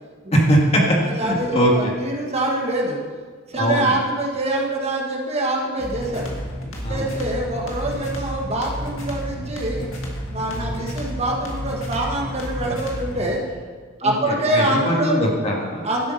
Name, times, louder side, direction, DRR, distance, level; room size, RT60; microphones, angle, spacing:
voice 1, 0.3-1.7 3.6-4.0 6.8-7.1 10.5-10.8 14.0-15.9, equal, 30° left, -1 dB, 1.9 m, -21 dB
voice 2, 1.0-3.0 3.5-6.3 6.9-9.9 10.3-13.4 14.0-15.2 15.8-16.1, right 1 dB, 30° right, -1 dB, 1.7 m, -25 dB
sound 1, 5.8-13.3, equal, 75° left, 2.3 m, -31 dB
12.0 x 8.4 x 5.7 m, 1.5 s
head